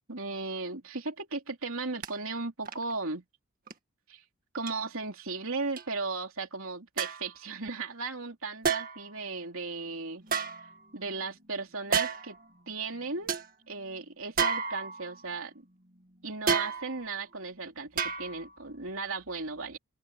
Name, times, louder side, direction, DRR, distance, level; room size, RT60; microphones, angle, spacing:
voice 1, 0.0-3.2 4.1-4.2 4.5-10.3 10.9-12.4 12.7-13.3 13.7-15.6 16.2-19.8, right 3 dB, 65° right, 3.2 m, -36 dB
sound 1, 2.0-2.1 2.7-2.9 3.7-3.8 4.7-4.8 5.8-5.9 7.0-7.3 8.6-9.1 10.2-11.1 11.9-12.4 12.9-13.0 13.3-13.5 14.4-15.2 16.5-17.1 18.0-18.6 18.9-19.0, right 6 dB, 40° right, 2.0 m, -31 dB
open air
head